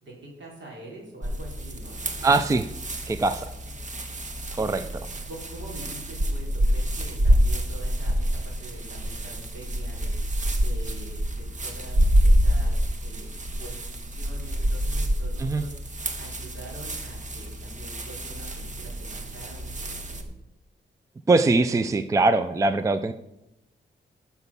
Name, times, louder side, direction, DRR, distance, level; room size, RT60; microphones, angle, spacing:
voice 1, 0.0-2.3 5.3-10.1 10.6-13.8 14.1-15.7 16.2-20.2, right 2 dB, 70° right, -2 dB, 4.1 m, -44 dB
sound 1, 1.2-20.2, equal, 40° right, 1.2 m, -27 dB
voice 2, 2.2-2.7 3.1-3.5 4.6-4.8 15.4-15.6 21.3-23.1, right 3 dB, 15° right, 10 dB, 0.4 m, -22 dB
12.5 x 5.8 x 6.8 m, 0.90 s
wide cardioid pair, 175°, 20 cm